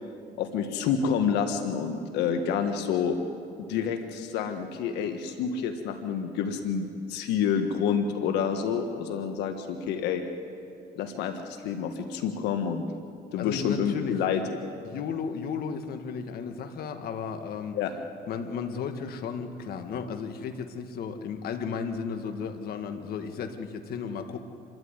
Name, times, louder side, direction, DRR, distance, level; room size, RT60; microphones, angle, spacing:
voice 1, 0.4-3.2 3.7-10.2 11.0-12.8 13.3-14.4 17.7-17.9, left 7 dB, 85° left, 6 dB, 1.4 m, -28 dB
voice 2, 13.4-14.4 14.8-17.8 18.3-24.4, left 6 dB, 65° left, 6 dB, 1.6 m, -34 dB
27.5 x 12.5 x 9.7 m, 2.5 s
cardioid pair, 110°, 17 cm